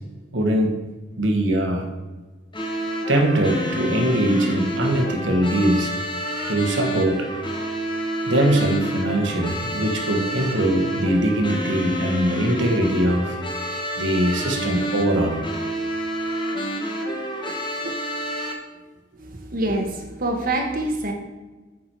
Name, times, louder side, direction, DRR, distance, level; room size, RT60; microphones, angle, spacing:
voice 1, 0.3-0.7 1.2-1.9 3.1-5.9 6.5-7.3 8.3-13.4 14.0-15.4 17.4-17.6 17.8-17.9, right 1 dB, 85° right, 3 dB, 1.4 m, -22 dB
sound 1, 2.5-18.5, equal, 25° left, 1.3 m, -28 dB
voice 2, 19.2-21.1, right 2 dB, 50° right, 2 dB, 1.2 m, -26 dB
8.7 x 6.3 x 4.6 m, 1.2 s
head